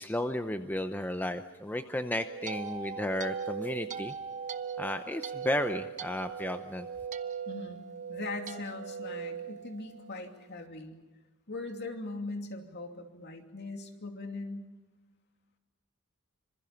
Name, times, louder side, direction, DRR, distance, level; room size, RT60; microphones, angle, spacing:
voice 1, 0.0-4.1 4.8-6.9, left 1 dB, 10° left, 8 dB, 0.7 m, -33 dB
sound 1, 1.9-10.3, right 7 dB, 35° right, 0.9 m, -39 dB
voice 2, 7.5-7.8 8.1-11.0 11.5-14.7, left 3 dB, 50° left, 4 dB, 2.7 m, -40 dB
26.5 x 26.0 x 5.8 m, 1.2 s
head